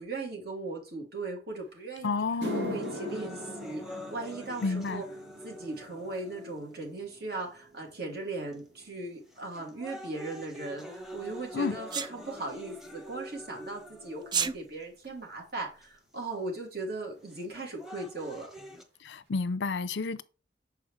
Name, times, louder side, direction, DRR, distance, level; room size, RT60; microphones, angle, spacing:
voice 1, 0.0-2.2 2.5-5.0 5.4-18.5, right 2 dB, 60° right, 2.6 m, -38 dB
sound 1, 1.7-1.8 2.2-10.7 11.0-11.4 12.2-12.3 15.0-15.1 16.8-16.9 17.1-17.3 17.6-18.1 18.5-18.6 19.1-19.2, left 1 dB, 80° right, 2.0 m, -43 dB
voice 2, 2.0-2.8 4.6-5.0 11.5-11.8 19.0-20.2, left 4 dB, 90° left, 0.6 m, -30 dB
sound 2, 2.8-6.8 7.6-7.7 8.5-8.8 9.3-14.8 15.8-15.9 17.3-18.8, left 1 dB, ahead, 1.0 m, -45 dB
Sneeze, 11.9-12.1 14.2-14.5, right 6 dB, 25° right, 0.4 m, -28 dB
6.9 x 4.9 x 3.3 m
head